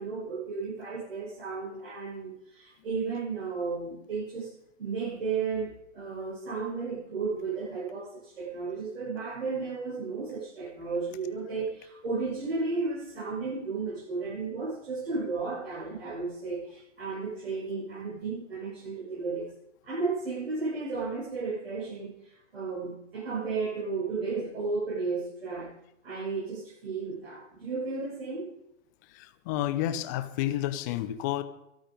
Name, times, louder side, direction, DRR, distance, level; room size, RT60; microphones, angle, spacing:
voice 1, 0.0-4.5 4.8-19.5 19.8-25.7 26.0-28.5, right 4 dB, 50° right, -7 dB, 7.6 m, -33 dB
voice 2, 29.1-31.4, left 13 dB, 15° left, 13 dB, 0.6 m, -30 dB
23.0 x 8.8 x 5.2 m, 0.84 s
figure-of-eight pair, 120°, 38 cm